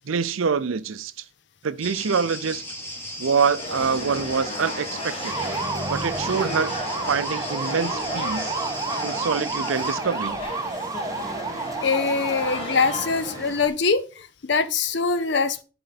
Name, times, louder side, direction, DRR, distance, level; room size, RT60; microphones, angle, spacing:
voice 1, 0.1-1.1 1.6-2.6 3.2-5.3 5.9-6.7 7.1-8.6 9.0-10.4, right 5 dB, 80° right, 0.5 m, -25 dB
sound 1, 1.8-10.0, left 1 dB, 10° left, 1.4 m, -36 dB
sound 2, 3.6-13.5, left 1 dB, 25° left, 1.8 m, -34 dB
sound 3, 5.2-13.7, right 3 dB, 15° right, 0.3 m, -31 dB
voice 2, 11.8-15.6, left 4 dB, 55° left, 0.6 m, -23 dB
11.0 x 3.9 x 4.1 m
head